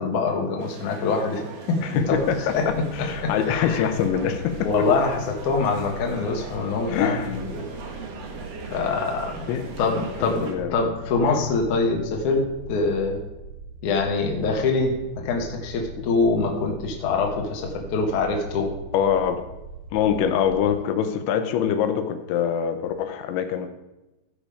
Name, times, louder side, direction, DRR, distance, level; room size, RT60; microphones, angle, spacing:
voice 1, 0.0-1.4 1.7-2.8 3.2-3.9 4.6-7.6 8.7-9.5 9.8-13.2 13.8-18.7, left 4 dB, 60° left, 2 dB, 2.2 m, -24 dB
sound 1, 0.6-10.5, right 3 dB, 60° right, 2.5 m, -40 dB
voice 2, 1.8-4.7 6.9-7.3 9.5-9.7 10.4-10.7 11.3-11.4 18.9-19.4 19.9-23.7, left 8 dB, 90° left, 7 dB, 3.2 m, -24 dB
sound 2, 2.0-20.7, right 4 dB, 80° right, 2.7 m, -41 dB
15.5 x 5.2 x 4.9 m, 1.0 s
omnidirectional pair, 5.2 m